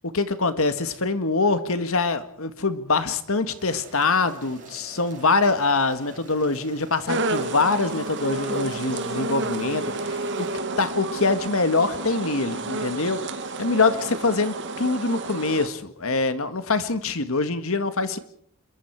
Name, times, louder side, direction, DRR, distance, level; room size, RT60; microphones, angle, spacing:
voice 1, 0.1-10.5 10.8-13.3 13.6-18.2, left 3 dB, 70° left, 10 dB, 1.9 m, -24 dB
sound 1, 3.6-10.6, right 2 dB, 35° right, 6.3 m, -46 dB
sound 2, 7.1-15.7, right 2 dB, 55° right, 2.4 m, -30 dB
27.5 x 22.5 x 4.8 m, 0.63 s
head